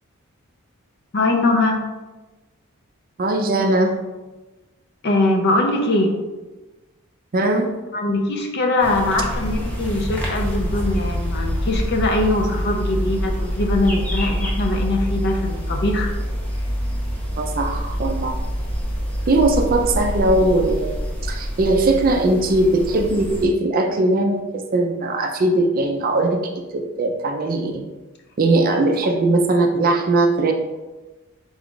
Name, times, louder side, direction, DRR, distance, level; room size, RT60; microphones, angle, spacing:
voice 1, 1.1-1.8 5.0-6.1 7.9-16.1, left 2 dB, 50° left, 2 dB, 0.5 m, -21 dB
voice 2, 3.2-3.9 7.3-7.7 17.4-18.4 19.3-26.4 26.7-27.8 28.4-30.5, right 2 dB, 40° right, 4 dB, 0.4 m, -19 dB
sound 1, 8.8-23.4, equal, 5° left, 0.6 m, -26 dB
4.0 x 2.3 x 3.7 m, 1.1 s
head